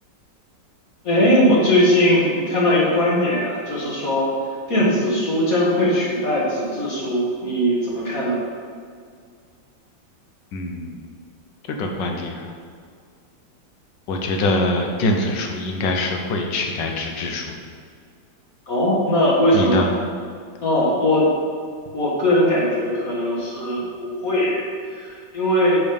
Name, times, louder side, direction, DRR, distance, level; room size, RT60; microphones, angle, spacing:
voice 1, 1.0-4.3 4.7-8.4 18.7-19.9 20.6-21.3 21.9-25.8, left 1 dB, 50° left, -6 dB, 2.0 m, -20 dB
voice 2, 10.5-11.0 11.7-12.5 14.1-17.6 19.5-19.9, left 2 dB, 70° left, 2 dB, 1.5 m, -24 dB
6.8 x 5.3 x 5.3 m, 2.1 s
omnidirectional pair, 2.1 m